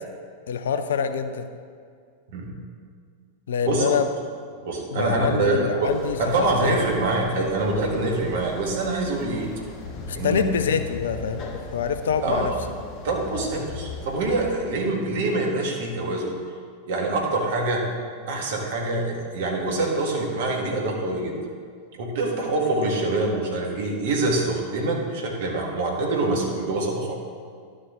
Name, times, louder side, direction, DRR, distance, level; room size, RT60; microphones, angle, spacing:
voice 1, 0.5-1.5 3.5-4.1 4.9-7.1 10.1-12.5, left 6 dB, 65° left, 9 dB, 0.5 m, -26 dB
voice 2, 4.6-5.9 6.2-9.5 10.2-10.4 12.2-12.5 13.0-16.3 16.9-17.8 18.3-21.3 22.0-27.2, right 2 dB, 55° right, 0 dB, 1.7 m, -25 dB
sound 1, 5.8-14.6, left 4 dB, 35° left, 1.2 m, -37 dB
11.5 x 6.3 x 3.7 m, 2.1 s
figure-of-eight pair, 90°, 0 cm